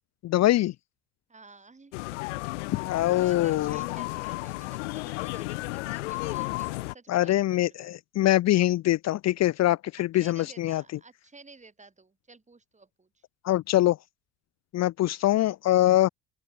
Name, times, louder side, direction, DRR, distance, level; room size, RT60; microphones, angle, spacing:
voice 1, 0.2-0.7 2.8-3.8 7.1-10.8 13.4-14.0 14.7-16.1, left 15 dB, 50° left, 0.7 m, -23 dB
voice 2, 1.3-2.5 2.8-7.9 9.9-13.2, right 3 dB, 20° right, 6.3 m, -53 dB
sound 1, 1.9-6.9, left 23 dB, 85° left, 0.6 m, -33 dB
open air
hypercardioid pair, 70°, 35 cm